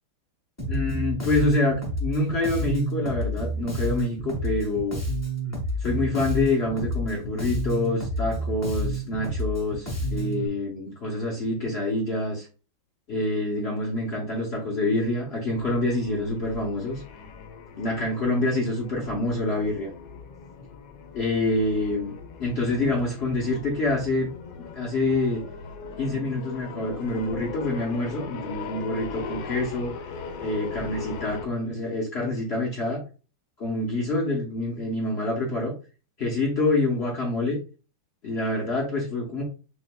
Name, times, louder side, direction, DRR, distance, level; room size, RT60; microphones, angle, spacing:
Bass guitar, 0.6-10.5, right 1 dB, 15° left, 0.6 m, -29 dB
voice 1, 0.7-5.0 5.8-12.5 13.1-17.0 17.7-19.9 21.1-22.1 22.4-24.3 24.6-25.4 26.0-29.9 30.4-33.0 33.6-35.7 36.2-37.6 38.2-39.4, left 2 dB, 55° left, -2 dB, 0.7 m, -26 dB
sound 1, 15.5-31.5, left 5 dB, 85° left, 1.5 m, -39 dB
6.0 x 2.9 x 2.2 m, 0.35 s
omnidirectional pair, 2.2 m